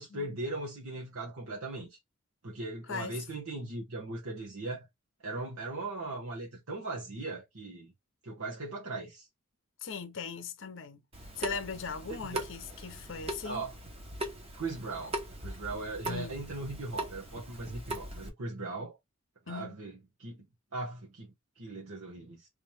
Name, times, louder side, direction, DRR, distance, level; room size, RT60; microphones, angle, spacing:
voice 1, 0.0-2.0 2.4-4.9 5.2-7.9 8.2-9.3 12.1-12.5 13.4-13.7 14.5-19.0 19.5-20.5 20.7-22.5, right 2 dB, 85° right, 1.2 m, -39 dB
voice 2, 9.8-11.0 11.4-13.6 16.0-16.4 19.5-19.8, left 5 dB, 65° left, 0.7 m, -39 dB
Water tap faucet / Sink (filling or washing) / Drip, 11.1-18.3, right 1 dB, 30° right, 1.0 m, -40 dB
3.4 x 2.9 x 3.3 m
head